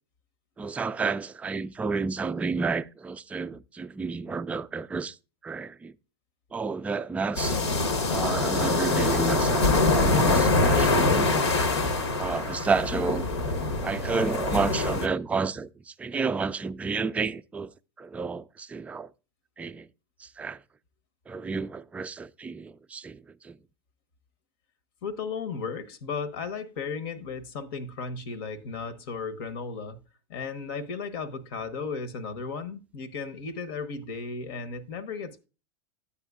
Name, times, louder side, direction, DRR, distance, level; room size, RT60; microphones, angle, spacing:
voice 1, 0.6-5.2 5.4-5.9 6.5-7.6 8.1-11.3 12.2-17.7 18.0-19.1 19.6-19.9 20.2-20.6 21.3-23.6, right 4 dB, 10° right, 0.3 m, -31 dB
sound 1, 7.4-15.1, left 3 dB, 80° left, 1.1 m, -24 dB
voice 2, 25.0-30.0 30.3-35.5, left 5 dB, 60° left, 0.9 m, -35 dB
10.5 x 8.4 x 2.3 m
hypercardioid pair, 90°, 14 cm